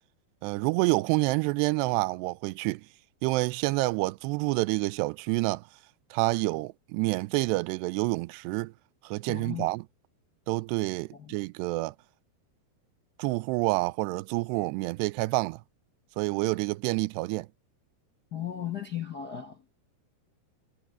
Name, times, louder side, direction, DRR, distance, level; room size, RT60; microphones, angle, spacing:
voice 1, 0.4-2.9 3.2-5.7 6.1-8.7 9.0-9.8 10.5-12.0 13.2-15.6 16.2-17.5, right 23 dB, 85° right, 2.7 m, -28 dB
voice 2, 9.2-9.7 11.1-11.3 18.3-19.7, left 10 dB, 60° left, 1.0 m, -36 dB
omnidirectional pair, 4.8 m